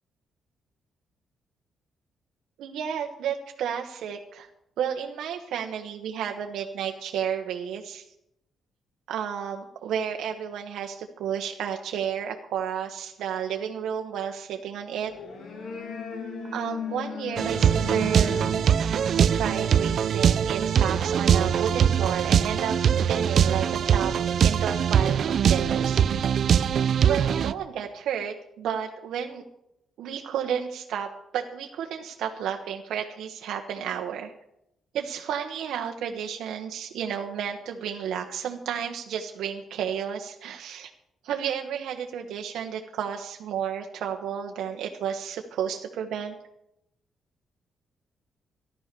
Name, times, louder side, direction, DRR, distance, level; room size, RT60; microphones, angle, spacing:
voice 1, 2.6-4.5 4.8-8.0 9.1-15.1 16.5-18.3 19.3-24.1 24.4-26.0 27.0-29.4 30.0-34.3 34.9-40.9 41.2-46.3, right 8 dB, 85° right, 3 dB, 1.2 m, -32 dB
sound 1, 15.0-20.2, left 5 dB, 60° left, 3.0 m, -38 dB
sound 2, 17.4-27.5, right 8 dB, 55° right, 0.5 m, -22 dB
15.0 x 12.0 x 6.8 m, 0.81 s
cardioid pair, 150°, 0 cm